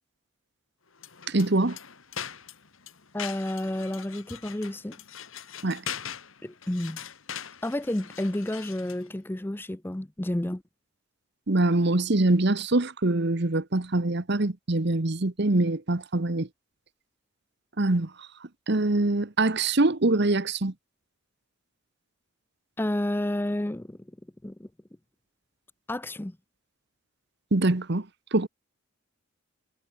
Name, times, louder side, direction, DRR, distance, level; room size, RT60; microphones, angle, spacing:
sound 1, 0.9-9.1, left 8 dB, 65° left, 2.2 m, -41 dB
voice 1, 1.3-1.8 5.6-5.8 11.5-16.5 17.8-18.1 18.7-20.7 27.5-28.1 28.3-28.5, right 2 dB, 50° right, 1.1 m, -24 dB
voice 2, 3.1-5.0 6.4-7.0 7.6-10.6 22.8-24.0 24.4-24.7 25.9-26.4, left 1 dB, 10° left, 0.5 m, -30 dB
head